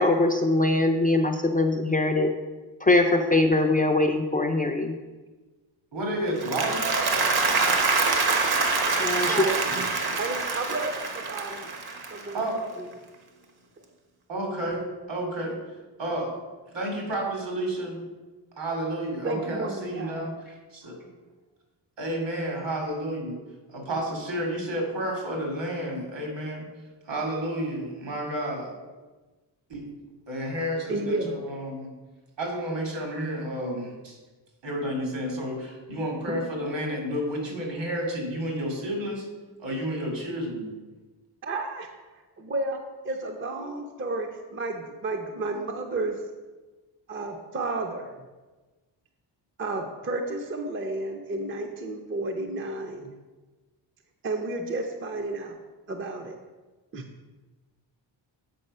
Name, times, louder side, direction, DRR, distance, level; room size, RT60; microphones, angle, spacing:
voice 1, 0.0-2.3 2.8-5.0 9.0-9.5, left 2 dB, 20° left, 2 dB, 0.4 m, -22 dB
voice 2, 5.9-6.8 9.6-9.7 9.9-10.2 12.3-12.6 14.3-15.6 16.0-16.3 16.7-18.0 18.6-20.9 22.0-23.4 23.7-26.6 27.1-28.7 29.7-29.9 30.3-31.9 32.4-34.2 34.6-39.3 39.6-40.7, right 1 dB, 70° right, 0 dB, 2.5 m, -31 dB
Applause, 6.2-12.6, right 3 dB, 55° right, 1.1 m, -25 dB
voice 3, 9.2-9.6 10.2-11.7 12.1-12.4 12.8-12.9 19.2-20.3 30.9-31.4 36.3-36.4 41.4-41.9 42.4-46.2 47.1-48.1 49.6-53.2 54.2-55.6 55.9-56.4 56.9-57.0, right 2 dB, 30° right, 4 dB, 0.6 m, -32 dB
7.6 x 5.4 x 5.4 m, 1.2 s
wide cardioid pair, 155°, 45 cm